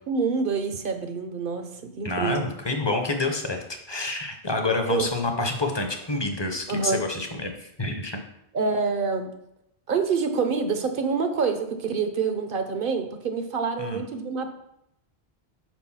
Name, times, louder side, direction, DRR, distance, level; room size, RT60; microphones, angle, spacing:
voice 1, 0.1-2.4 4.9-5.1 6.7-7.0 8.5-9.3 9.9-14.5, right 5 dB, 60° right, 7 dB, 0.8 m, -26 dB
voice 2, 2.0-8.2 13.8-14.0, left 2 dB, 30° left, 4 dB, 0.7 m, -28 dB
5.0 x 4.6 x 5.5 m, 0.79 s
omnidirectional pair, 1.0 m